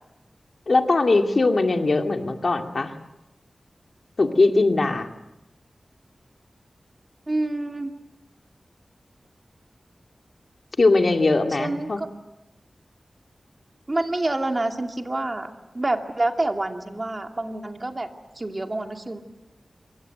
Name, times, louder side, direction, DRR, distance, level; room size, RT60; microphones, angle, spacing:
voice 1, 0.7-2.9 4.2-5.1 10.8-12.0, left 3 dB, 55° left, 5 dB, 2.4 m, -20 dB
voice 2, 7.3-7.9 11.6-12.1 13.9-18.1 18.4-19.2, right 2 dB, 30° right, 4 dB, 2.5 m, -27 dB
26.5 x 23.5 x 8.0 m, 0.93 s
wide cardioid pair, 105°, 0 cm